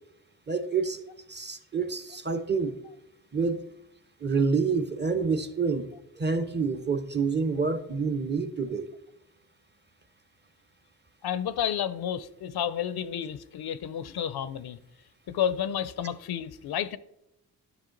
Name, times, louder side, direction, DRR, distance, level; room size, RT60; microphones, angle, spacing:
voice 1, 0.5-1.0 1.3-2.8 3.3-3.6 4.2-5.9 6.2-8.9, right 4 dB, 30° right, 0.8 m, -27 dB
voice 2, 11.2-14.8 15.3-17.0, left 9 dB, 90° left, 0.6 m, -31 dB
10.5 x 6.4 x 3.9 m
cardioid pair, 80°, 37 cm